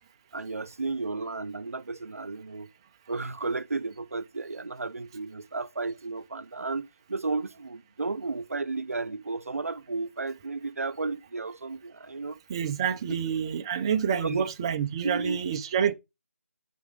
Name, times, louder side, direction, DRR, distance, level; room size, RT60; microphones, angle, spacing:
voice 1, 0.3-2.7 3.1-6.8 7.1-12.4 14.2-14.5 15.0-15.4, right 3 dB, 70° right, 0.5 m, -33 dB
voice 2, 12.5-15.9, right 8 dB, 20° right, 0.4 m, -28 dB
4.8 x 4.2 x 5.0 m
figure-of-eight pair, 155°, 8 cm